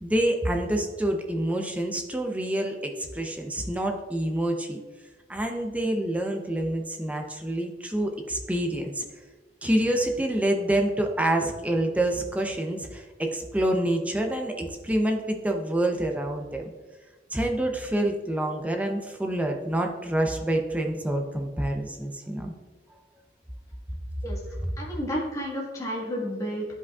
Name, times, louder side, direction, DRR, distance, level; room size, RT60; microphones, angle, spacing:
voice 1, 0.0-4.8 5.3-9.0 9.6-16.7 17.3-22.5, right 1 dB, 10° right, 2 dB, 0.6 m, -27 dB
voice 2, 24.8-26.7, equal, 20° left, -3 dB, 1.4 m, -31 dB
11.0 x 5.1 x 2.3 m, 1.3 s
head